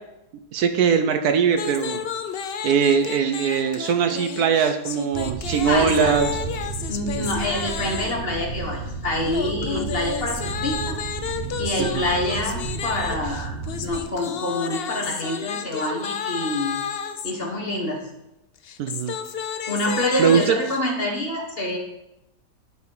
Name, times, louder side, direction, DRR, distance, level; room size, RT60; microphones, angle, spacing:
voice 1, 0.5-2.0 2.6-6.3 7.2-7.3 11.8-12.0 18.8-19.1 20.2-20.5, right 7 dB, 70° right, 7 dB, 1.1 m, -21 dB
sound 1, 1.5-8.3 9.2-17.3 18.6-20.8, left 7 dB, 80° left, 0.5 m, -32 dB
sound 2, 5.1-14.0, right 5 dB, 45° right, 1.0 m, -33 dB
voice 2, 5.7-6.2 6.9-11.0 11.6-13.5 13.8-16.9 17.2-18.1 19.7-21.8, left 1 dB, 35° left, 0 dB, 1.5 m, -26 dB
11.0 x 4.2 x 5.6 m, 0.88 s
omnidirectional pair, 1.8 m